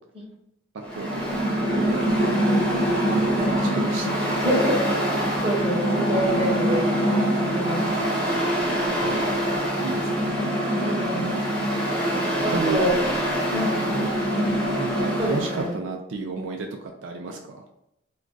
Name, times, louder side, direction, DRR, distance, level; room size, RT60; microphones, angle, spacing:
Mechanical fan, 0.8-15.7, equal, 5° left, 0.8 m, -24 dB
voice 1, 0.9-1.2 1.7-2.5 2.9-4.1 8.9-9.3 9.8-10.4 12.5-12.8 13.9-14.1 14.8-17.6, right 3 dB, 75° right, 2 dB, 0.4 m, -32 dB
voice 2, 3.2-3.8 4.3-6.9 7.5-7.9 10.8-11.3 12.4-12.9 13.5-13.9 15.2-15.7, equal, 30° right, -3 dB, 0.8 m, -27 dB
2.3 x 2.3 x 3.8 m, 0.82 s
head